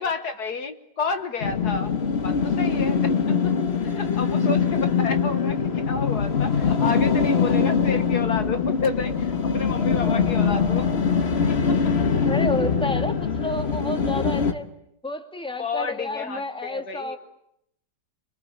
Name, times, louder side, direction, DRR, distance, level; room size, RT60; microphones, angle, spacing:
voice 1, 0.0-3.5 3.8-10.9 11.5-11.8 15.6-17.2, left 4 dB, 60° left, 8 dB, 1.9 m, -30 dB
sound 1, 1.4-14.5, left 6 dB, 40° left, 1.5 m, -23 dB
voice 2, 12.3-14.7 15.0-17.2, left 1 dB, 5° left, 5 dB, 2.4 m, -30 dB
27.5 x 24.5 x 8.7 m, 0.76 s
omnidirectional pair, 1.9 m